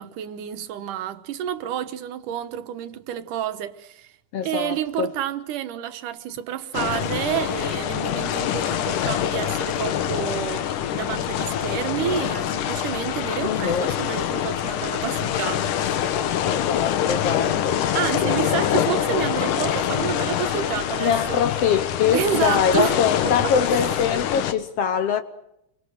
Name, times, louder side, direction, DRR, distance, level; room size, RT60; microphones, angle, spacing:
voice 1, 0.0-4.1 4.4-16.2 17.9-21.4 22.1-23.0 23.4-23.5, right 10 dB, 80° right, 2.7 m, -29 dB
voice 2, 4.3-5.1 13.4-13.9 16.5-17.8 18.2-18.6 21.0-25.2, left 7 dB, 65° left, 1.7 m, -23 dB
sound 1, 6.7-24.5, left 10 dB, 80° left, 2.7 m, -25 dB
28.5 x 24.0 x 6.5 m
omnidirectional pair, 3.6 m